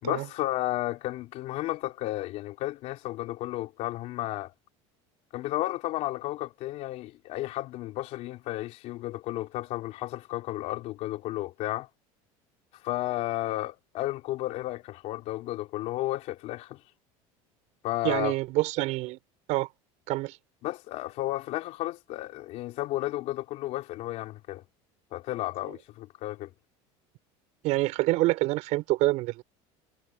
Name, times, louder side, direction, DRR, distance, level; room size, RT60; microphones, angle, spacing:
voice 1, 0.0-4.5 5.3-11.9 12.8-16.8 17.8-18.4 20.6-24.6 25.1-26.5, left 16 dB, 55° left, 3.1 m, -33 dB
voice 2, 18.0-19.2 19.5-19.7 20.1-20.4 27.6-29.4, right 20 dB, 60° right, 4.2 m, -26 dB
cardioid pair, 145°, 13 cm